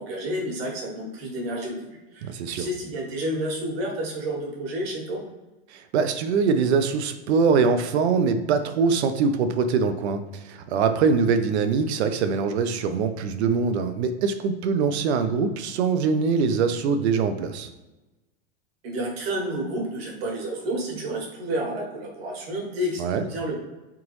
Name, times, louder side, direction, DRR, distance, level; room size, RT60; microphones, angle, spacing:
voice 1, 0.0-5.2 18.8-23.6, right 1 dB, 65° right, 0 dB, 1.4 m, -30 dB
voice 2, 2.2-2.7 5.7-17.7 23.0-23.2, right 5 dB, 85° right, 9 dB, 0.6 m, -23 dB
3.9 x 3.5 x 3.1 m, 1.1 s
supercardioid pair, 165°, 32 cm